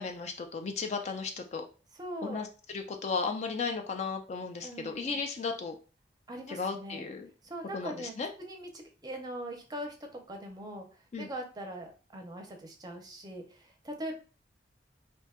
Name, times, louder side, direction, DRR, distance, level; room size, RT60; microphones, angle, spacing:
voice 1, 0.0-1.6 2.2-5.8 6.5-7.3 7.7-8.3 11.1-11.3, left 4 dB, 40° left, 4 dB, 0.3 m, -35 dB
voice 2, 1.9-2.4 4.6-5.2 6.3-7.0 7.4-8.7 9.0-10.9 11.2-14.1, right 1 dB, 25° right, 3 dB, 0.6 m, -41 dB
2.6 x 2.2 x 3.4 m, 0.36 s
head